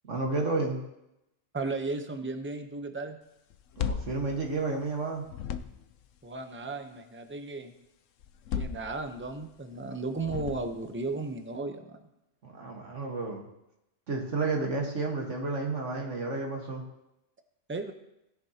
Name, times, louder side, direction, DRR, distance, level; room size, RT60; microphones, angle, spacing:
voice 1, 0.0-0.8 3.8-5.3 12.4-13.5 14.1-16.8, right 3 dB, 75° right, 0 dB, 1.9 m, -31 dB
voice 2, 1.5-3.2 6.2-7.7 8.6-12.0 17.7-17.9, right 3 dB, 10° right, 6 dB, 0.7 m, -35 dB
sound 1, 3.5-5.0 5.3-6.0 8.2-9.4 10.2-11.0, left 7 dB, 90° left, 1.0 m, -36 dB
17.0 x 10.5 x 2.9 m, 0.85 s
omnidirectional pair, 1.3 m